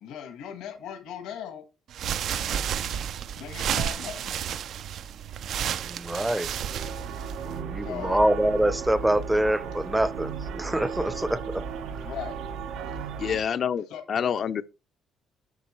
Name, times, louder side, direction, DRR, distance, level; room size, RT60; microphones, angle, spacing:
voice 1, 0.0-1.6 3.3-4.4 7.8-8.2 12.0-12.4 12.9-13.0 13.9-14.0, left 9 dB, 85° left, 1.4 m, -38 dB
sound 1, 1.9-7.6, right 9 dB, 65° right, 0.4 m, -31 dB
voice 2, 5.7-6.5 7.4-11.7, right 1 dB, 5° right, 0.6 m, -25 dB
sound 2, 6.6-13.4, right 6 dB, 85° right, 0.9 m, -35 dB
voice 3, 13.2-14.6, left 8 dB, 50° left, 0.4 m, -27 dB
8.2 x 6.0 x 3.1 m
cardioid pair, 120°, 0 cm